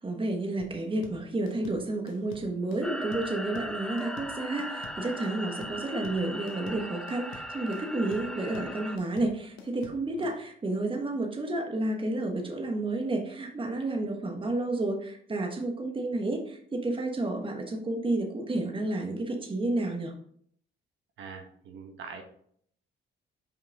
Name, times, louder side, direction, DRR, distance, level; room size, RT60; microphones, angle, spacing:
voice 1, 0.0-20.1, right 2 dB, 25° right, 3 dB, 1.2 m, -31 dB
sound 1, 0.6-10.4, left 4 dB, 90° left, 1.0 m, -48 dB
sound 2, 2.8-9.0, equal, 5° left, 0.6 m, -38 dB
voice 2, 21.2-22.2, right 5 dB, 75° right, 3 dB, 1.2 m, -43 dB
5.4 x 5.2 x 3.4 m, 0.62 s
cardioid pair, 90°, 20 cm